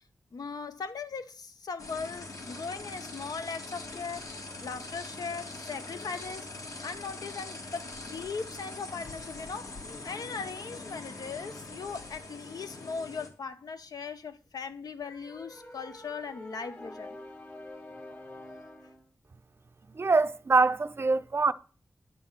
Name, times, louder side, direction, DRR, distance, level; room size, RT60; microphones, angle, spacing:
voice 1, 0.3-4.3 4.6-17.2, left 5 dB, 80° left, 0.8 m, -39 dB
sound 1, 1.8-13.3, left 2 dB, 60° left, 1.7 m, -43 dB
sound 2, 15.0-19.0, left 1 dB, 30° left, 1.5 m, -46 dB
voice 2, 19.9-21.5, right 3 dB, 40° right, 0.5 m, -24 dB
9.7 x 4.2 x 7.3 m
wide cardioid pair, 120°, 6 cm